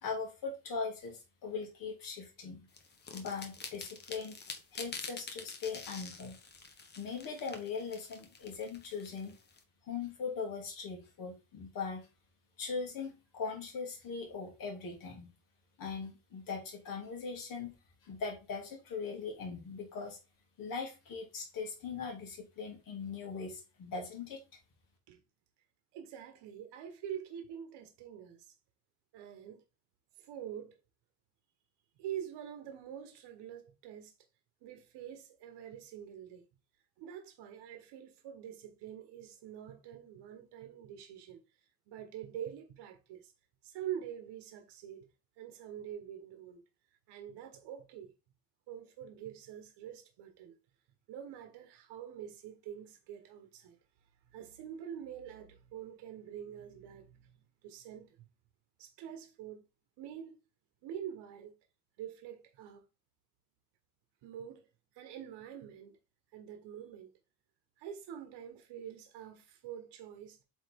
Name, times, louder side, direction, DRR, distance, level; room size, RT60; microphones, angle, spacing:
voice 1, 0.0-2.7 3.1-4.3 4.7-6.3 7.0-9.3 9.8-12.0 12.6-15.3 15.8-17.7 18.0-20.2 20.6-24.4, left 5 dB, 50° left, 2.6 m, -40 dB
sound 1, 2.7-9.6, left 4 dB, 25° left, 0.9 m, -47 dB
voice 2, 25.9-28.5 29.1-29.6 30.2-30.8 32.0-34.1 34.6-36.4 37.0-41.4 41.9-43.3 43.6-45.1 45.4-46.6 47.1-48.1 48.7-50.5 51.1-53.8 54.3-58.2 58.8-59.6 60.0-60.4 60.8-61.6 62.0-62.8 64.2-64.7 64.9-66.0 66.3-67.1 67.8-70.4, right 9 dB, 75° right, 1.3 m, -45 dB
7.9 x 3.7 x 3.6 m
cardioid pair, 175°, 41 cm